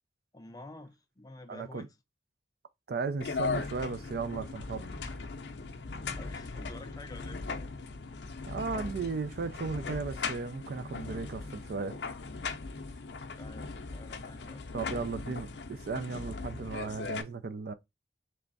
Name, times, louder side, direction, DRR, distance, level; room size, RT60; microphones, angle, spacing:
voice 1, 0.3-2.0 6.0-7.4 13.4-14.9 17.2-17.4, left 2 dB, 20° left, 0.5 m, -49 dB
voice 2, 1.5-1.9 2.9-5.2 8.5-12.0 14.7-17.7, right 4 dB, 55° right, 0.4 m, -36 dB
sound 1, 3.2-17.2, left 4 dB, 65° left, 0.6 m, -39 dB
3.4 x 3.2 x 3.9 m
head